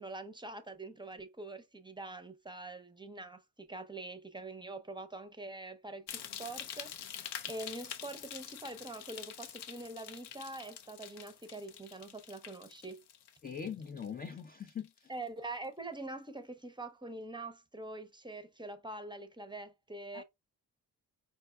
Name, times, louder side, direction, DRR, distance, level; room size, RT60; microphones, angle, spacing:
voice 1, 0.0-13.0 15.1-20.2, right 2 dB, 10° right, 0.7 m, -44 dB
sound 1, 6.1-14.4 14.7-15.1 15.6-15.7, left 9 dB, 65° left, 0.6 m, -46 dB
voice 2, 13.4-15.1 20.1-20.2, left 7 dB, 25° left, 0.4 m, -42 dB
4.5 x 2.2 x 2.3 m
hypercardioid pair, 45°, 42 cm